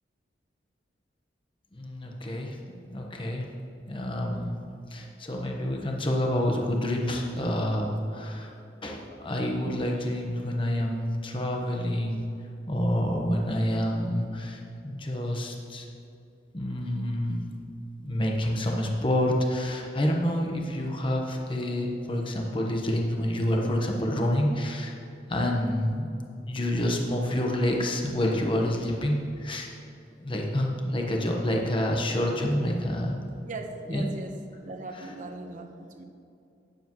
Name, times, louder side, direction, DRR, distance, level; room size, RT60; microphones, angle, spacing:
voice 1, 1.7-2.6 2.9-3.5 3.9-4.6 4.9-8.5 8.8-12.2 12.7-15.8 16.5-17.5 18.0-25.0 25.3-26.1 26.5-29.7 30.2-33.2 33.9-34.1 34.9-35.1, left 1 dB, 30° left, 1 dB, 1.1 m, -28 dB
voice 2, 33.5-34.3 34.6-36.0, right 2 dB, 45° right, 5 dB, 1.0 m, -39 dB
12.5 x 9.9 x 3.1 m, 2.6 s
head